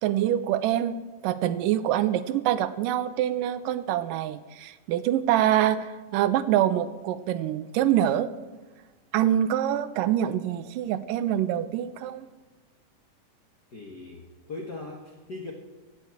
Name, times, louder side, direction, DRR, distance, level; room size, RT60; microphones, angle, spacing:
voice 1, 0.0-0.9 1.2-8.3 9.1-12.3, right 11 dB, 85° right, 13 dB, 2.3 m, -25 dB
voice 2, 13.7-15.5, left 2 dB, 55° left, 0 dB, 1.2 m, -39 dB
17.0 x 7.1 x 8.1 m, 1.3 s
omnidirectional pair, 3.8 m